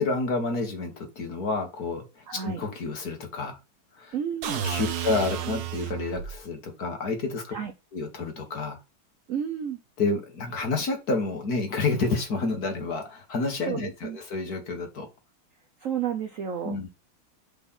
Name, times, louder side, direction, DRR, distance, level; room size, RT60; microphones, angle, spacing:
voice 1, 0.0-3.6 3.9-4.2 4.5-7.5 7.9-8.8 10.0-15.1 16.6-16.9, left 3 dB, 45° left, 4 dB, 2.0 m, -29 dB
voice 2, 2.3-2.6 4.1-4.6 7.5-7.7 9.3-9.8 13.7-14.2 15.8-16.8, right 8 dB, 85° right, 6 dB, 0.7 m, -31 dB
sound 1, 4.4-6.4, right 9 dB, 55° right, 1.3 m, -31 dB
5.3 x 4.2 x 5.6 m, 0.27 s
omnidirectional pair, 2.3 m